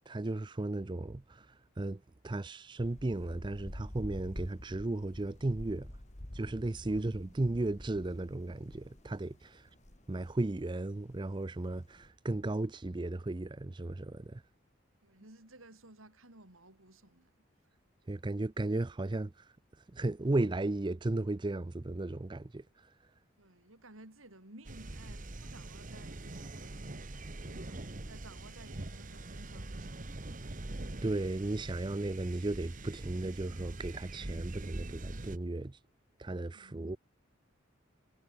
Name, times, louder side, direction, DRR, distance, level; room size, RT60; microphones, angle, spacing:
voice 1, 0.1-1.5 1.8-5.9 6.3-9.7 10.1-14.4 18.1-19.4 19.9-22.6 31.0-35.8 36.2-37.0, right 2 dB, 25° right, 0.5 m, -35 dB
sound 1, 2.8-12.1, left 1 dB, 35° left, 1.9 m, -48 dB
voice 2, 15.0-17.3 23.4-30.1 36.5-36.8, right 2 dB, 90° right, 5.5 m, -56 dB
sound 2, 24.6-35.4, right 2 dB, 40° right, 1.2 m, -43 dB
head